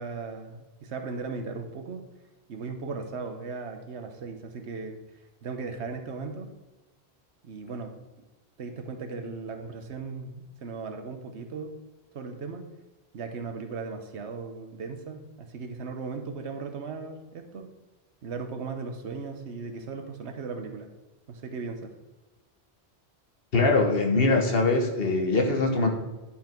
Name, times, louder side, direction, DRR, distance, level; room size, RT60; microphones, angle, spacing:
voice 1, 0.0-2.1 2.5-5.0 5.4-6.5 7.4-7.9 8.6-11.8 12.1-12.7 13.1-17.7 18.2-20.9 21.3-21.9, right 4 dB, 85° right, 5 dB, 1.3 m, -37 dB
voice 2, 23.5-25.9, left 3 dB, 60° left, 2 dB, 1.5 m, -22 dB
11.0 x 5.7 x 4.5 m, 1.1 s
omnidirectional pair, 1.1 m